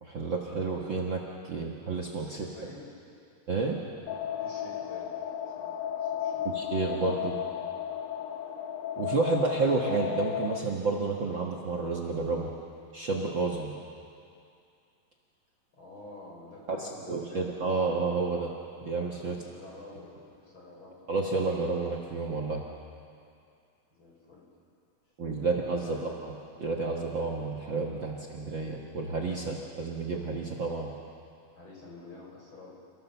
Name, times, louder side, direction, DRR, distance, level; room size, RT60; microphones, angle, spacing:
voice 1, 0.0-2.5 3.5-3.8 6.4-7.4 9.0-12.5 12.9-13.7 16.7-18.5 18.8-19.4 21.1-22.6 25.2-30.9, right 3 dB, 85° right, 0 dB, 1.0 m, -30 dB
voice 2, 2.2-2.9 4.4-6.5 15.7-17.5 19.2-21.1 23.9-24.5 25.4-26.1 31.5-32.7, left 2 dB, 30° left, -3 dB, 5.5 m, -49 dB
sound 1, 4.1-10.6, left 10 dB, 85° left, 3.1 m, -34 dB
29.5 x 15.5 x 7.0 m, 2.5 s
omnidirectional pair, 4.6 m